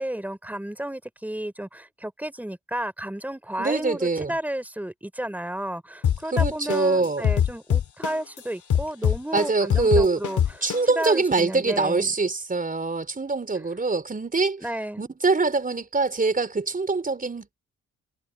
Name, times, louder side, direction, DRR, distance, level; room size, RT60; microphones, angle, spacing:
voice 1, 0.0-10.4 10.9-12.1 14.6-15.0, right 1 dB, 5° right, 4.2 m, -32 dB
voice 2, 3.6-4.4 6.3-7.2 9.3-10.2 10.6-14.7 15.0-17.5, right 3 dB, 25° right, 4.7 m, -24 dB
sound 1, 6.0-8.4 8.7-11.1, left 9 dB, 65° left, 3.0 m, -22 dB
supercardioid pair, 70°, 32 cm